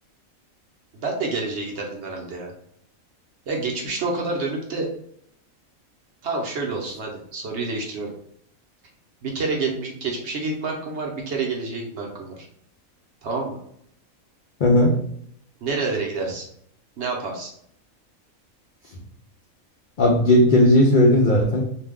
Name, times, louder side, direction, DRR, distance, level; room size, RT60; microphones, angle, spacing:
voice 1, 1.0-2.5 3.5-4.9 6.2-8.1 9.2-12.5 13.2-13.6 15.6-16.5 17.0-17.5, right 3 dB, 60° right, 0 dB, 0.8 m, -28 dB
voice 2, 14.6-15.0 20.0-21.6, left 1 dB, 80° left, -1 dB, 0.4 m, -16 dB
2.6 x 2.1 x 3.4 m, 0.68 s
omnidirectional pair, 1.5 m